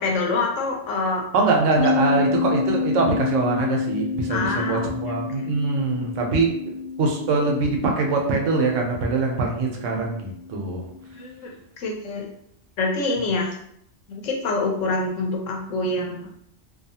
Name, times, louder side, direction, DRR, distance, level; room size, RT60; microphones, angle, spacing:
voice 1, 0.0-1.2 4.3-5.5 11.1-12.2 12.8-13.6 14.1-16.3, left 2 dB, 85° left, 0 dB, 1.0 m, -26 dB
voice 2, 1.3-6.5 7.0-10.8, right 3 dB, 80° right, 1 dB, 1.0 m, -23 dB
sound 1, 1.8-11.2, left 5 dB, 50° left, 0.6 m, -29 dB
2.7 x 2.3 x 2.7 m, 0.72 s
omnidirectional pair, 1.3 m